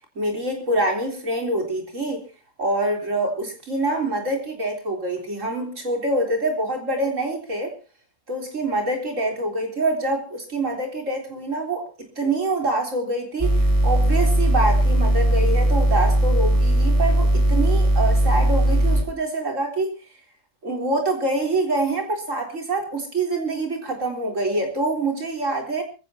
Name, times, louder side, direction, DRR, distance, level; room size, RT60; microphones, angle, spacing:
voice 1, 0.2-2.2 2.6-7.7 8.3-19.9 20.6-25.8, right 2 dB, 85° right, 4.2 m, -25 dB
sound 1, 13.4-19.0, right 1 dB, 15° right, 4.9 m, -18 dB
23.0 x 16.0 x 2.9 m
omnidirectional pair, 1.3 m